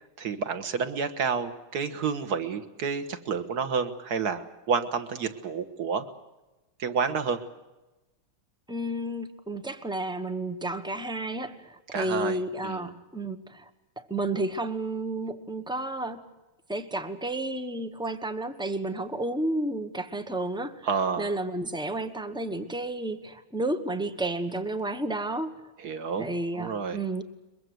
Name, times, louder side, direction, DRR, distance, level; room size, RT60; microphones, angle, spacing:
voice 1, 0.2-6.1 6.8-7.4 11.9-12.4 12.6-12.9 20.8-21.3 25.8-26.3 26.5-27.0, right 5 dB, 50° right, 10 dB, 1.8 m, -29 dB
voice 2, 8.7-13.7 14.0-16.2 16.7-20.9 21.2-25.6 26.2-27.2, right 2 dB, 5° right, 9 dB, 0.5 m, -31 dB
22.5 x 22.5 x 7.8 m, 1.1 s
omnidirectional pair, 2.4 m